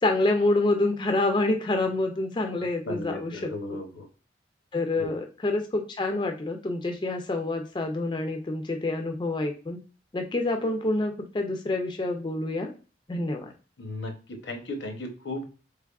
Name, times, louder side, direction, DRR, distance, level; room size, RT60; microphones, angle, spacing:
voice 1, 0.0-3.8 4.7-9.8 10.1-12.7 13.1-13.5, left 2 dB, 25° left, 4 dB, 0.4 m, -27 dB
voice 2, 2.9-4.1 5.0-5.1 13.8-15.5, left 2 dB, 85° left, 5 dB, 0.8 m, -35 dB
3.4 x 3.3 x 2.3 m, 0.35 s
head